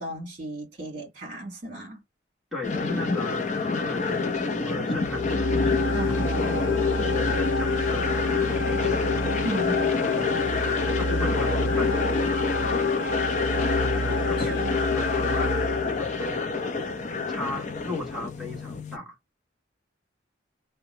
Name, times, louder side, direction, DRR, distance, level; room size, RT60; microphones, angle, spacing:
voice 1, 0.0-2.0 5.9-6.8 9.4-10.3 14.0-14.8, right 1 dB, 40° right, 1.4 m, -35 dB
voice 2, 2.5-6.6 7.1-9.2 9.5-9.6 9.9-12.6 13.5-14.6 14.9-16.6 17.3-19.2, left 3 dB, ahead, 1.4 m, -37 dB
sound 1, 2.6-19.0, left 3 dB, 40° left, 0.6 m, -28 dB
sound 2, 5.0-16.4, left 3 dB, 90° left, 0.6 m, -27 dB
2.8 x 2.2 x 4.1 m
head